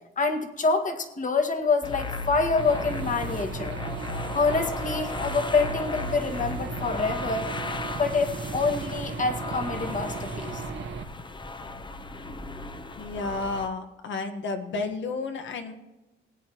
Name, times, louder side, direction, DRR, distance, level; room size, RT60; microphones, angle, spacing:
voice 1, 0.2-3.8 4.3-7.5 8.0-10.6, left 4 dB, 40° left, 6 dB, 1.8 m, -26 dB
sound 1, 1.8-13.7, left 3 dB, 25° left, 0.9 m, -36 dB
Aircraft / Engine, 2.6-11.0, right 5 dB, 65° right, 1.4 m, -36 dB
voice 2, 13.0-15.7, left 3 dB, 70° left, 6 dB, 1.6 m, -31 dB
19.5 x 9.0 x 3.1 m, 1.0 s
cardioid pair, 90°, 20 cm